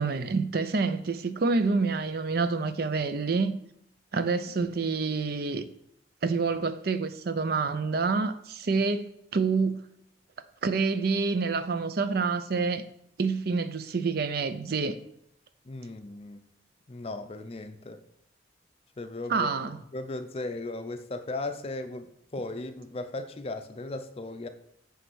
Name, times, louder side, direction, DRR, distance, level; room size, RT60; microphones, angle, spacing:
voice 1, 0.0-3.6 4.1-5.7 6.2-9.8 10.6-12.9 13.2-15.0 19.3-19.8, right 4 dB, 55° right, 0.5 m, -27 dB
voice 2, 15.6-16.4 16.9-18.0 19.0-24.5, left 2 dB, 30° left, 0.5 m, -37 dB
9.4 x 3.3 x 6.2 m
head